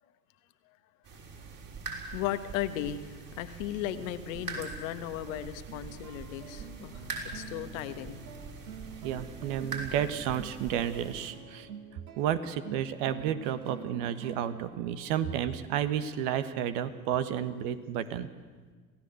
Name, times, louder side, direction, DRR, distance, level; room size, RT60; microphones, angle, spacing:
sound 1, 1.0-11.3, right 4 dB, 50° right, 6.2 m, -43 dB
voice 1, 2.1-7.0 7.3-8.2, left 12 dB, 70° left, 10 dB, 1.6 m, -36 dB
sound 2, 4.0-16.7, right 5 dB, 85° right, 2.0 m, -48 dB
voice 2, 9.0-11.7 12.2-18.3, right 10 dB, 65° right, 11 dB, 1.6 m, -31 dB
26.5 x 16.5 x 7.9 m, 1.5 s
hypercardioid pair, 70°, 41 cm